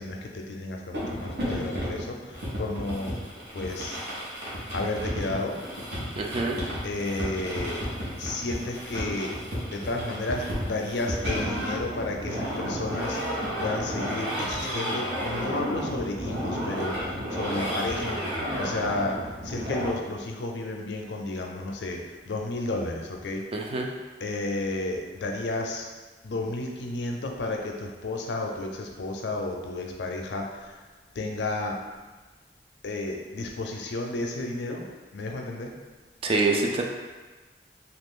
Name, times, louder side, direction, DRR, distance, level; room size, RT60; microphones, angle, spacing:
voice 1, 0.0-4.0 4.7-5.6 6.8-7.8 8.2-9.3 9.7-13.2 13.6-23.4 24.2-25.9 26.2-30.9 31.2-31.8 32.8-34.8 35.1-35.7, left 2 dB, 80° left, 2 dB, 0.5 m, -32 dB
sound 1, 0.9-19.9, equal, 65° right, 0.9 m, -32 dB
voice 2, 6.2-6.6 23.5-23.9 36.2-36.8, right 3 dB, 30° right, 1 dB, 0.3 m, -25 dB
2.8 x 2.4 x 3.6 m, 1.3 s
head